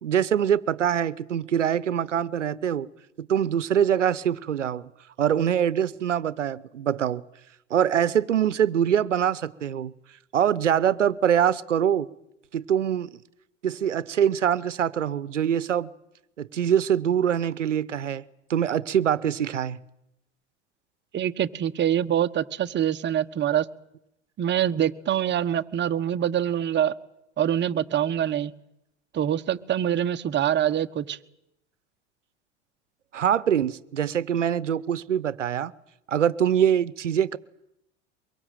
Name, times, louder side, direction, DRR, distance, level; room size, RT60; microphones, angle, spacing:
voice 1, 0.0-2.9 3.2-4.9 5.2-7.2 7.7-9.9 10.3-12.1 12.5-13.1 13.6-15.9 16.4-18.2 18.5-19.8 33.1-35.7 36.1-37.4, right 9 dB, 85° right, 18 dB, 1.0 m, -24 dB
voice 2, 21.1-23.7 24.4-26.9 27.4-28.5 29.1-31.2, right 10 dB, 30° right, 8 dB, 1.3 m, -25 dB
23.5 x 22.5 x 9.2 m, 0.82 s
hypercardioid pair, 85°, 36 cm